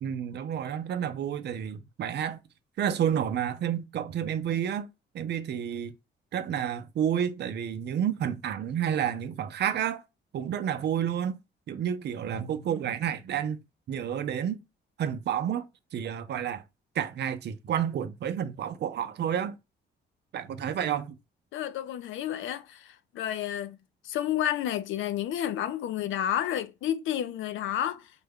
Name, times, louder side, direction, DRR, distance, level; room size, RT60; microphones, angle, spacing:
voice 1, 0.0-2.4 2.8-4.9 5.1-5.9 6.3-10.0 10.3-11.4 11.7-13.6 13.9-14.6 15.0-15.6 15.9-16.6 16.9-19.6 20.3-21.2, right 9 dB, 60° right, 0.5 m, -30 dB
voice 2, 21.5-23.8 24.0-28.1, left 11 dB, 75° left, 0.5 m, -31 dB
4.1 x 2.2 x 3.5 m
cardioid pair, 90°, 20 cm